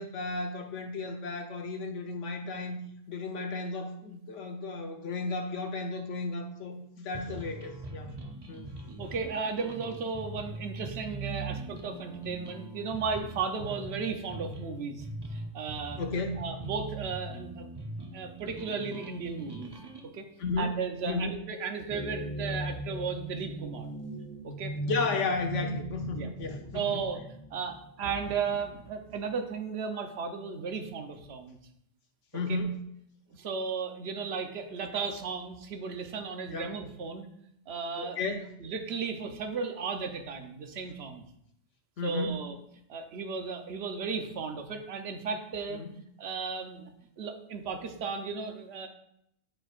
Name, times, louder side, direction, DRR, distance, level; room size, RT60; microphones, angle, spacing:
voice 1, 0.0-2.8 3.1-8.1 8.5-8.6 16.0-16.4 20.4-20.7 21.0-21.3 24.9-27.0 32.3-32.8 36.5-36.7 38.0-38.4 42.0-42.3 45.7-45.9, left 3 dB, 80° left, 4 dB, 1.2 m, -33 dB
sound 1, 7.1-20.1, right 2 dB, 25° right, 0.6 m, -41 dB
voice 2, 9.0-15.0 15.3-16.0 16.4-17.7 18.1-19.7 20.1-20.2 20.6-23.9 24.4-24.7 26.1-26.3 26.7-27.2 27.5-31.6 32.5-32.6 33.3-37.3 37.7-38.3 38.6-41.2 42.0-42.6 42.9-45.8 46.2-46.9 47.2-48.9, right 5 dB, 60° right, 5 dB, 1.0 m, -35 dB
sound 2, 21.9-28.5, equal, 20° left, 0.5 m, -38 dB
10.5 x 4.5 x 2.5 m, 0.74 s
omnidirectional pair, 1.2 m